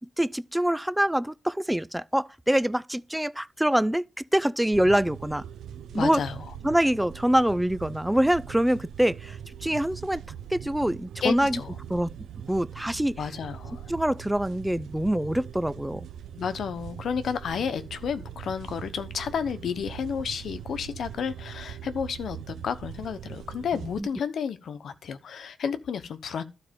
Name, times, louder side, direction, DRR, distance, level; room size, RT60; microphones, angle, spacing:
voice 1, 0.2-4.0 4.3-5.4 5.9-6.2 6.6-9.4 9.6-10.2 10.5-11.6 11.9-12.1 12.5-13.2 13.9-16.1 23.8-24.1, right 1 dB, 5° right, 0.4 m, -25 dB
sound 1, 4.7-24.0, right 9 dB, 85° right, 0.6 m, -41 dB
voice 2, 5.9-6.4 11.2-11.8 13.2-13.9 16.4-26.4, left 7 dB, 70° left, 1.0 m, -31 dB
12.0 x 4.2 x 5.2 m
cardioid pair, 110°, 0 cm